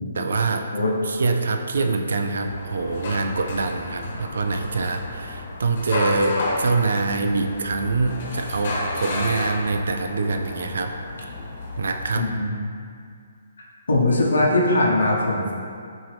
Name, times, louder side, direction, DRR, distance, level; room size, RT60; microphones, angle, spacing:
voice 1, 0.1-0.7 1.0-10.9 11.8-12.3, right 3 dB, 75° right, 5 dB, 0.4 m, -24 dB
sound 1, 2.4-12.2, left 2 dB, 50° left, 0.9 m, -32 dB
voice 2, 12.2-12.6 13.9-15.5, left 2 dB, 90° left, -4 dB, 0.9 m, -20 dB
5.9 x 2.6 x 3.4 m, 2.3 s
hypercardioid pair, 150°, 0 cm